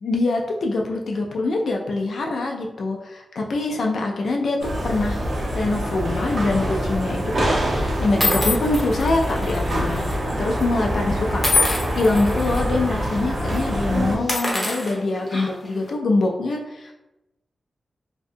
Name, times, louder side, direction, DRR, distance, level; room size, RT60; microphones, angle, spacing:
voice 1, 0.0-5.2 5.5-10.0 10.4-16.9, left 2 dB, 75° left, 0 dB, 0.3 m, -24 dB
sound 1, 4.6-14.2, equal, 65° right, 0.7 m, -25 dB
sound 2, 6.5-6.8 7.6-7.7 8.2-10.2 10.4-10.6 11.4-12.6 13.0-13.2 13.5-13.6 14.1-15.7, left 2 dB, 20° left, 0.8 m, -26 dB
2.6 x 2.2 x 2.5 m, 0.94 s
cardioid pair, 70°, 0 cm